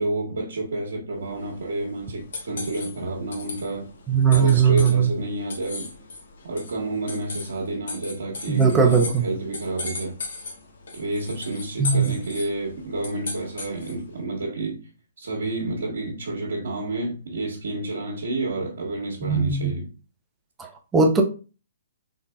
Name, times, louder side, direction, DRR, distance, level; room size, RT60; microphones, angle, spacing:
voice 1, 0.0-3.9 4.3-5.9 6.4-10.2 10.9-14.8 15.2-19.9, right 2 dB, 70° right, 1.3 m, -29 dB
sound 1, 1.3-14.1, left 3 dB, 65° left, 1.3 m, -38 dB
voice 2, 4.1-5.1 8.5-9.3 11.8-12.2 19.2-19.7 20.6-21.2, right 6 dB, 15° right, 0.7 m, -19 dB
3.9 x 3.7 x 2.3 m
figure-of-eight pair, 130°, 0 cm